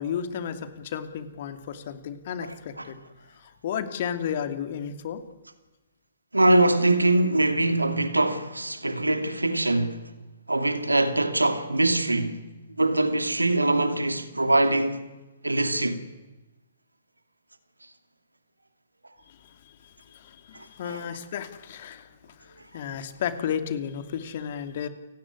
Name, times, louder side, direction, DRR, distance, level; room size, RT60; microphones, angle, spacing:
voice 1, 0.0-3.0 3.4-5.2 20.1-24.9, left 8 dB, 45° left, 2.6 m, -33 dB
voice 2, 2.4-2.9 6.3-10.0 10.5-12.4 12.8-15.0 15.4-16.0 20.8-21.0, right 2 dB, 80° right, 2.6 m, -23 dB
29.5 x 17.5 x 9.7 m
figure-of-eight pair, 120°, 0 cm